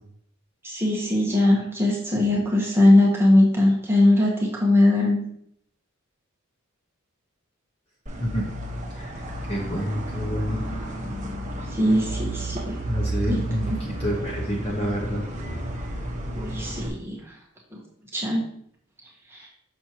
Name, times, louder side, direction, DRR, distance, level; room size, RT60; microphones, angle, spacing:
voice 1, 0.6-5.2 11.7-12.8 13.3-13.8 16.4-17.2 18.1-18.4 19.3-19.5, left 1 dB, 10° right, -3 dB, 1.1 m, -20 dB
sound 1, 8.1-16.9, right 1 dB, 35° right, 1.0 m, -32 dB
voice 2, 9.5-10.6 12.8-15.2, equal, 25° left, -3 dB, 0.9 m, -28 dB
6.3 x 6.1 x 2.9 m, 0.68 s
head